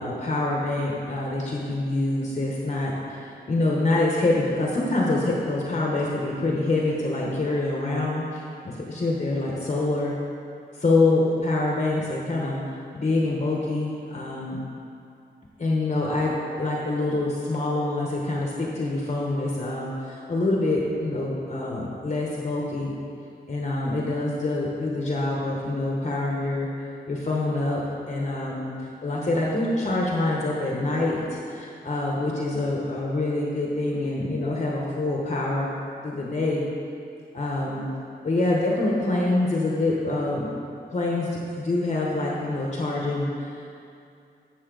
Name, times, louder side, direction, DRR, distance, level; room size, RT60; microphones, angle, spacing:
voice 1, 0.0-10.1 10.8-12.6 12.9-14.6 15.6-16.3 16.6-22.9 23.5-26.7 27.1-27.8 28.1-35.7 36.0-36.7 37.3-37.8 38.2-40.5 40.9-41.3 41.6-43.7, left 2 dB, 40° left, -3 dB, 1.0 m, -26 dB
11.5 x 7.2 x 3.9 m, 2.5 s
wide cardioid pair, 135°, 18 cm